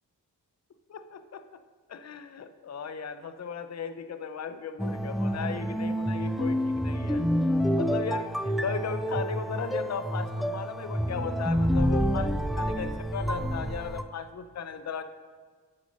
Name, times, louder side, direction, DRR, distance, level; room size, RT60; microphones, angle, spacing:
voice 1, 0.9-1.4 1.9-7.2 7.8-15.0, left 6 dB, 40° left, 10 dB, 0.7 m, -36 dB
sound 1, 4.8-14.0, equal, ahead, 0.4 m, -28 dB
8.4 x 5.2 x 5.3 m, 1.5 s
supercardioid pair, 45°, 42 cm